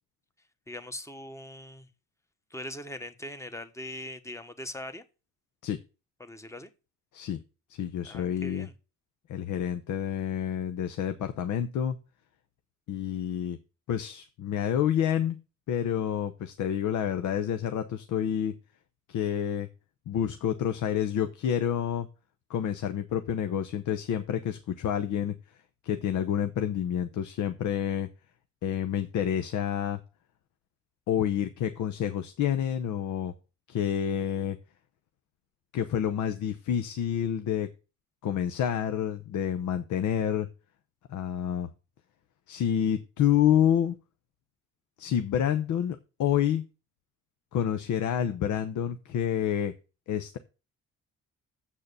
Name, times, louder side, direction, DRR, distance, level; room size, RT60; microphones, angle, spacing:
voice 1, 0.7-1.9 2.5-5.0 6.2-6.7 8.0-8.7, left 1 dB, 10° left, 1.2 m, -41 dB
voice 2, 7.8-8.7 9.3-12.0 12.9-13.6 13.9-15.4 15.7-18.5 19.1-19.7 20.1-22.1 22.5-25.3 25.8-28.1 28.6-30.0 31.1-33.3 33.7-34.6 35.7-37.7 38.2-40.5 41.1-41.7 42.5-43.9 45.0-46.6 47.5-49.7 50.1-50.4, left 9 dB, 75° left, 0.8 m, -28 dB
7.5 x 6.4 x 6.8 m
cardioid pair, 90°, 30 cm